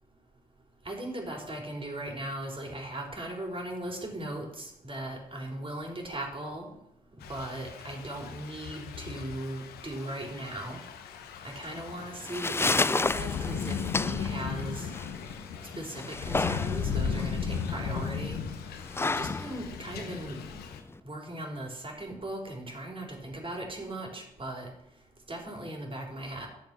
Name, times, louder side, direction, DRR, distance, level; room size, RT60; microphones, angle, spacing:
voice 1, 0.8-6.7 7.3-10.8 11.4-13.8 14.0-14.9 15.7-18.4 19.0-20.4 21.0-24.7 25.3-26.5, right 1 dB, 35° right, 0 dB, 4.3 m, -38 dB
Thunder / Rain, 7.2-20.8, left 6 dB, 90° left, 0.9 m, -36 dB
sound 1, 12.0-21.0, left 3 dB, 15° left, 0.3 m, -32 dB
12.5 x 6.5 x 6.2 m, 0.84 s
supercardioid pair, 45°, 16 cm